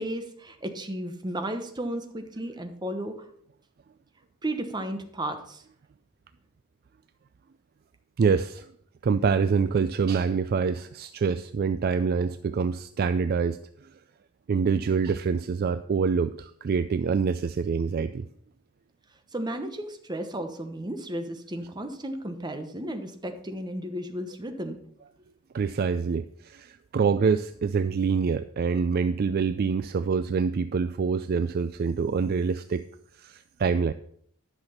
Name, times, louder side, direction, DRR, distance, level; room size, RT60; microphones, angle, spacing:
voice 1, 0.0-3.3 4.4-5.6 19.3-24.8, right 1 dB, 20° right, 6 dB, 1.1 m, -34 dB
voice 2, 8.2-8.7 9.0-13.9 14.5-18.3 25.5-32.8 33.1-33.9, right 5 dB, 45° right, 12 dB, 0.3 m, -26 dB
10.5 x 6.1 x 5.8 m, 0.64 s
head